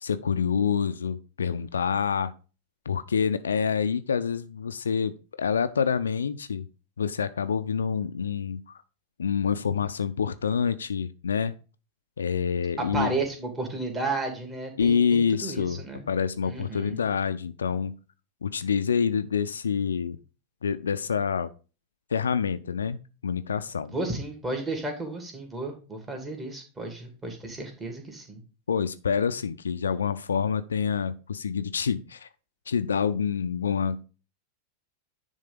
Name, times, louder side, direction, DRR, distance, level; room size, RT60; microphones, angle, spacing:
voice 1, 0.0-2.3 2.9-6.7 7.0-8.8 9.2-11.5 12.2-13.1 14.8-15.8 16.1-18.0 18.4-20.2 20.6-21.5 22.1-23.0 23.2-23.9 28.7-32.3 32.7-34.0, left 6 dB, 70° left, 11 dB, 0.5 m, -27 dB
voice 2, 12.9-16.1 16.5-17.0 23.9-28.4, right 2 dB, 15° right, 3 dB, 2.5 m, -33 dB
9.9 x 3.6 x 5.3 m, 0.34 s
figure-of-eight pair, 90°, 0 cm